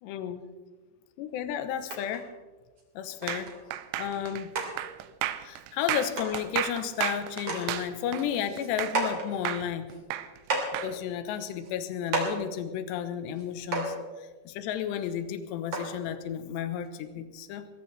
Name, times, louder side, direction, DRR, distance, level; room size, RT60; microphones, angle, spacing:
voice 1, 0.0-0.4 1.2-2.3 3.0-3.5 4.0-4.5 5.4-10.0 10.8-17.7, left 9 dB, 75° left, 10 dB, 2.7 m, -33 dB
sound 1, 1.9-2.2 2.8-2.9 3.2-3.6 4.1-4.2 4.5-4.7 5.8-5.9 6.2-6.4 6.9-7.0 7.4-7.6 8.0-9.3 9.9-10.0 10.4-10.9 11.6-11.7 12.1-12.4 13.3-13.5 13.7-14.0 15.0-15.1 15.7-16.0 16.9-17.0, right 3 dB, 35° right, 3.5 m, -32 dB
sound 2, 3.3-9.1 9.5-10.9, right 12 dB, 80° right, 3.0 m, -33 dB
21.5 x 17.5 x 3.3 m, 1.3 s
omnidirectional pair, 5.9 m